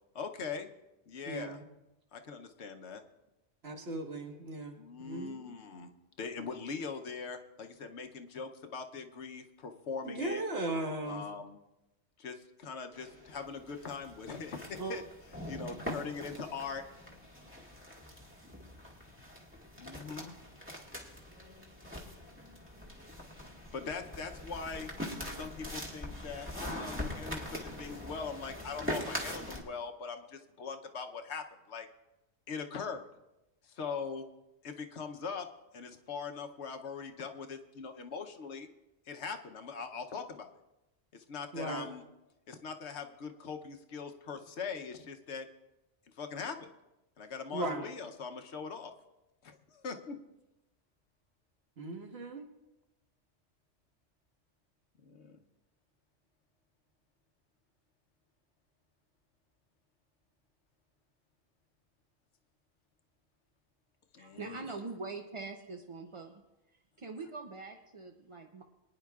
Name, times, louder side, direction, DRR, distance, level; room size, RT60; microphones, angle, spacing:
voice 1, 0.1-0.7 1.1-1.6 2.1-3.0 4.8-5.9 6.2-10.4 11.0-11.6 12.2-15.0 15.5-16.8 19.8-20.3 23.7-24.9 25.3-31.9 32.5-33.1 33.6-34.2 34.6-35.5 35.7-38.7 39.1-40.5 41.1-42.0 42.5-45.5 46.2-46.7 47.2-48.9 49.4-50.2 55.0-55.4 64.1-64.7, left 5 dB, 65° left, 5 dB, 1.1 m, -41 dB
voice 2, 1.3-1.6 3.6-5.5 10.0-11.2 14.8-14.9 41.5-41.9 47.5-47.8 51.8-52.4, right 2 dB, 55° right, 2 dB, 1.6 m, -37 dB
sound 1, 12.9-29.6, left 1 dB, 10° right, 1.7 m, -43 dB
voice 3, 64.2-66.4 66.7-68.6, right 3 dB, 40° right, 3 dB, 0.5 m, -43 dB
23.5 x 9.9 x 2.4 m, 0.97 s
omnidirectional pair, 1.2 m